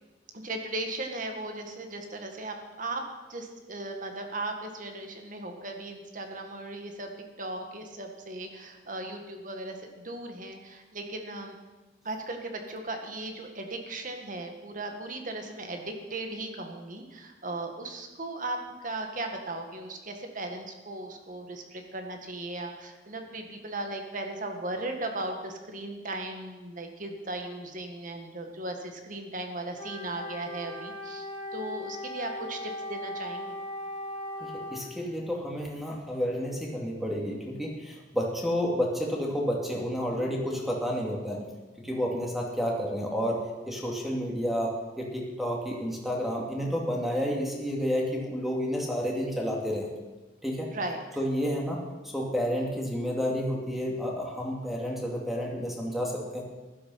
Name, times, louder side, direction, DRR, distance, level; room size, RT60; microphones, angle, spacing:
voice 1, 0.3-3.0 3.3-7.1 7.4-11.6 12.0-33.5 50.7-51.0, right 2 dB, 45° right, 4 dB, 1.8 m, -37 dB
Wind instrument woodwind instrument, 29.8-35.0, left 1 dB, 30° left, 1.8 m, -38 dB
voice 2, 34.4-41.4 41.8-43.4 43.7-50.0 50.4-50.7 51.2-56.4, equal, ahead, -2 dB, 2.5 m, -30 dB
15.0 x 12.5 x 5.7 m, 1.2 s
head